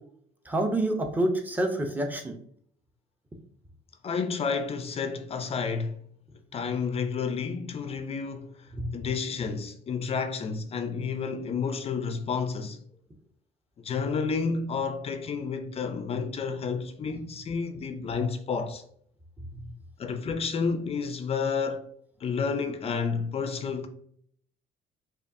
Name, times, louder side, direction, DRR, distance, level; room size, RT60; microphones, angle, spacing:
voice 1, 0.5-2.4 8.7-9.0 19.5-19.7, right 1 dB, 10° right, 0.6 m, -28 dB
voice 2, 4.0-6.0 6.5-12.8 13.8-18.8 20.0-21.9 22.2-23.9, left 5 dB, 35° left, 0.4 m, -30 dB
5.0 x 2.3 x 2.6 m
cardioid pair, 110°, 17 cm